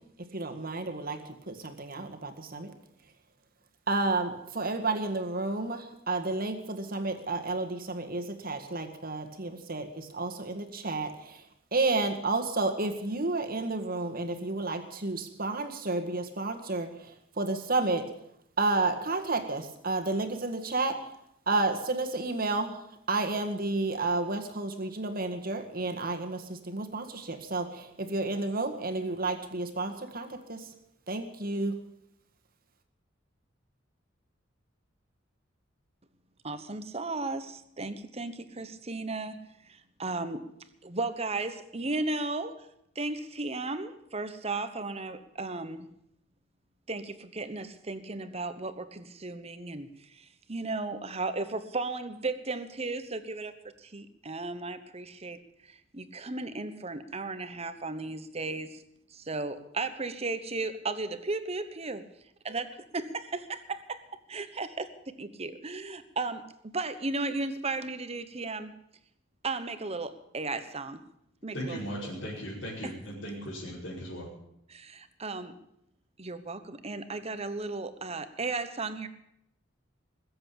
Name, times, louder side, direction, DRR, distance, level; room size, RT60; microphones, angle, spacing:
voice 1, 0.2-2.7 3.9-11.4 11.7-18.1 18.6-21.0 21.5-30.7 31.1-31.8, right 3 dB, 50° right, 6 dB, 1.9 m, -31 dB
voice 2, 36.4-39.4 39.6-40.5 40.8-42.7 42.9-45.9 46.9-58.8 59.1-62.0 62.4-64.0 64.3-64.9 65.2-66.5 66.7-68.7 69.4-71.0 71.4-71.8 74.7-75.5 76.2-79.1, right 3 dB, 30° right, 11 dB, 1.1 m, -35 dB
voice 3, 71.5-74.3, equal, 70° left, -10 dB, 5.3 m, -37 dB
21.0 x 7.8 x 8.7 m, 0.77 s
head